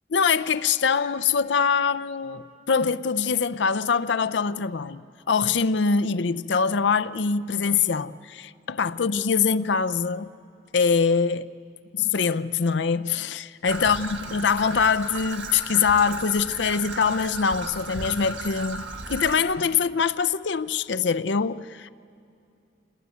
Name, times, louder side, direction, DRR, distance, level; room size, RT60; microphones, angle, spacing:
voice 1, 0.1-5.0 5.3-10.3 10.7-11.5 12.1-18.8 19.1-21.9, left 5 dB, 75° left, 0.6 m, -23 dB
Traffic noise roadway noise / Trickle dribble, 13.6-19.4, right 2 dB, 85° right, 1.5 m, -35 dB
27.5 x 20.0 x 9.5 m
head